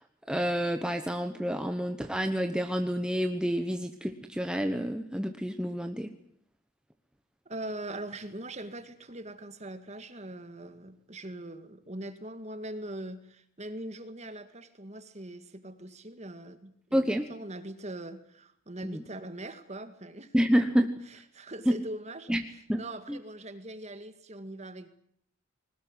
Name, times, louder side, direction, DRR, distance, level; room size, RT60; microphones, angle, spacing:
voice 1, 0.3-6.1 16.9-17.3 18.8-19.0 20.3-20.9 21.7-21.8 22.3-22.4 22.7-22.8 23.1-23.2, equal, 5° right, 6 dB, 1.1 m, -28 dB
voice 2, 7.5-20.3 21.1-22.4 22.8-24.9, right 1 dB, 35° right, 10 dB, 2.0 m, -41 dB
21.0 x 19.5 x 9.8 m, 0.68 s
head